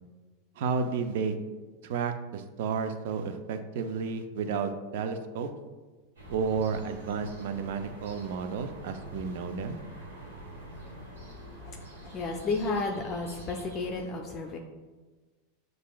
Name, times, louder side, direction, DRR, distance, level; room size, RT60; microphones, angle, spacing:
voice 1, 0.6-1.3 1.8-5.5 6.3-9.8, right 5 dB, 65° right, 8 dB, 0.4 m, -32 dB
sound 1, 6.2-14.0, right 1 dB, 85° right, 1.3 m, -45 dB
voice 2, 10.6-14.6, left 3 dB, 35° left, 1 dB, 0.4 m, -34 dB
6.8 x 2.5 x 2.2 m, 1.3 s
hypercardioid pair, 95°, 0 cm